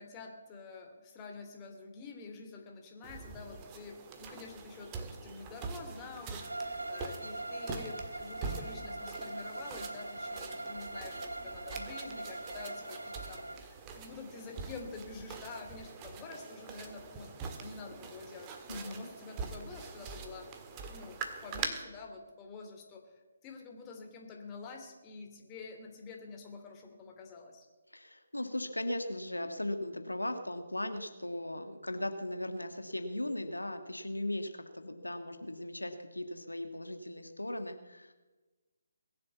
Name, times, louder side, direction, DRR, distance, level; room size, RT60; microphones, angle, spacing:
voice 1, 0.0-18.5 18.9-20.5 20.9-23.0 23.4-27.7, left 4 dB, 20° left, 3 dB, 2.7 m, -48 dB
sound 1, 3.0-21.7, right 5 dB, 20° right, 1.6 m, -44 dB
Bowed string instrument, 6.4-13.6, right 1 dB, 85° right, 1.2 m, -41 dB
voice 2, 18.7-19.1 27.9-38.1, left 1 dB, 90° left, 7 dB, 1.6 m, -38 dB
21.0 x 7.7 x 8.3 m, 1.2 s
figure-of-eight pair, 145°, 0 cm